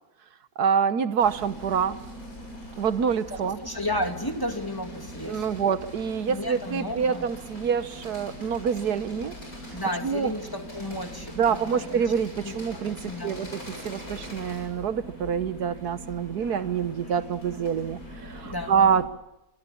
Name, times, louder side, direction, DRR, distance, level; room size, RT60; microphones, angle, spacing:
voice 1, 0.6-2.0 2.8-3.6 5.2-9.3 10.0-10.3 11.4-19.1, right 7 dB, 85° right, 12 dB, 1.7 m, -26 dB
sound 1, 1.2-19.0, equal, 65° left, 8.2 m, -42 dB
voice 2, 3.3-5.4 6.3-7.3 9.7-12.1 12.4-12.6 13.0-13.5 18.4-18.9, left 1 dB, 15° left, 5 dB, 2.5 m, -33 dB
26.0 x 24.0 x 7.2 m, 0.95 s
omnidirectional pair, 1.6 m